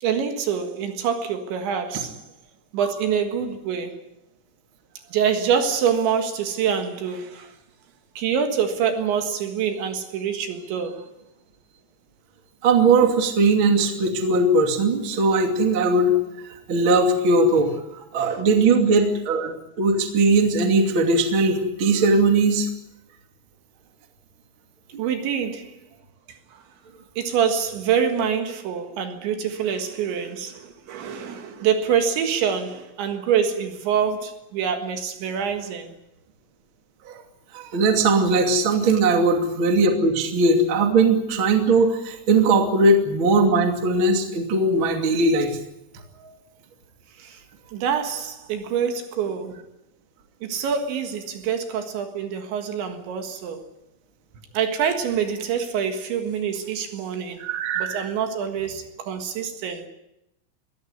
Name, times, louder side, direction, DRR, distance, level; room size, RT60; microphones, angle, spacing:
voice 1, 0.0-2.2 2.7-4.0 5.1-7.5 8.2-11.1 18.2-18.4 25.0-25.8 26.3-26.6 27.2-35.9 47.2-47.4 47.7-49.6 50.4-53.7 54.5-57.4 57.8-59.9, right 7 dB, 65° right, 3.7 m, -25 dB
voice 2, 12.6-16.1 16.7-17.7 18.1-22.7 37.1-37.2 37.5-45.6 46.2-46.3 57.4-58.1, right 3 dB, 35° right, 2.2 m, -19 dB
22.0 x 17.5 x 9.6 m
omnidirectional pair, 6.0 m